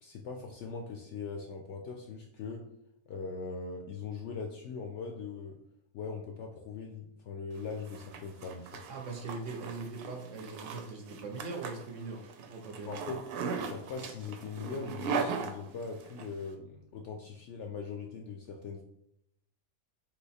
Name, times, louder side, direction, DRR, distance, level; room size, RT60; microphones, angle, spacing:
voice 1, 0.0-2.7 3.1-5.6 5.9-8.9 12.8-13.3 13.6-18.8, left 5 dB, 65° left, 2 dB, 0.7 m, -41 dB
Zipper (clothing), 7.6-16.3, right 5 dB, 85° right, 1.1 m, -39 dB
voice 2, 8.9-12.9, right 3 dB, 60° right, 3 dB, 1.0 m, -41 dB
3.7 x 2.9 x 4.1 m, 0.76 s
omnidirectional pair, 1.6 m